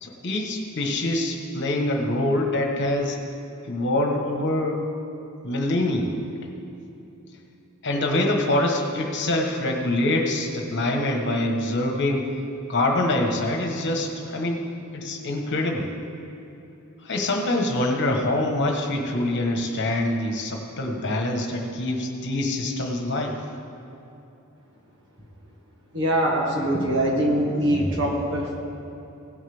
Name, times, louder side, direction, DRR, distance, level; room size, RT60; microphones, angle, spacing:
voice 1, 0.0-3.2 3.7-4.8 5.4-6.1 7.8-12.3 12.7-14.7 14.9-15.9 17.0-23.4, left 1 dB, 55° left, 2 dB, 1.3 m, -25 dB
voice 2, 25.9-28.6, right 1 dB, 60° right, -1 dB, 1.9 m, -23 dB
17.0 x 7.4 x 3.6 m, 3.0 s
head